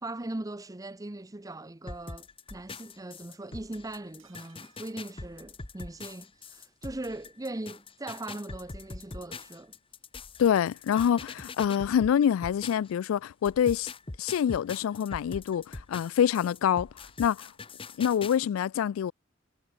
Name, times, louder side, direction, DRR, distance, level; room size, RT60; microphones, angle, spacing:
voice 1, 0.0-9.7, right 2 dB, 15° right, 0.7 m, -40 dB
sound 1, 1.9-13.1 13.4-18.4, left 3 dB, 25° left, 1.1 m, -43 dB
sound 2, 4.2-6.2 6.5-6.6 6.8-6.9, right 10 dB, 75° right, 5.9 m, -65 dB
voice 2, 10.4-13.9 14.2-16.9 17.2-17.5 18.0-19.1, left 8 dB, 85° left, 0.3 m, -26 dB
head